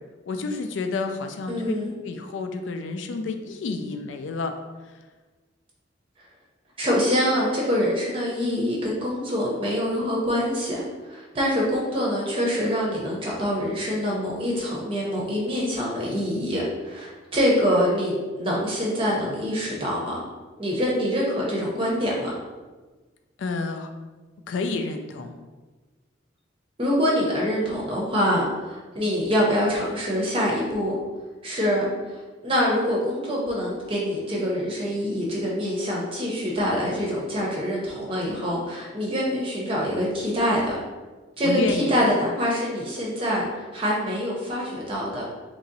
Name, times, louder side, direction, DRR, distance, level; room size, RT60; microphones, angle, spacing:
voice 1, 0.3-1.7 2.0-4.5 23.4-23.9 24.5-25.3 41.4-42.0, left 3 dB, 80° left, 6 dB, 0.4 m, -29 dB
voice 2, 1.5-1.9 6.8-20.2 20.6-22.4 26.8-31.0 31.4-40.7 41.4-45.2, equal, 30° right, -3 dB, 0.6 m, -25 dB
2.9 x 2.7 x 3.9 m, 1.3 s
head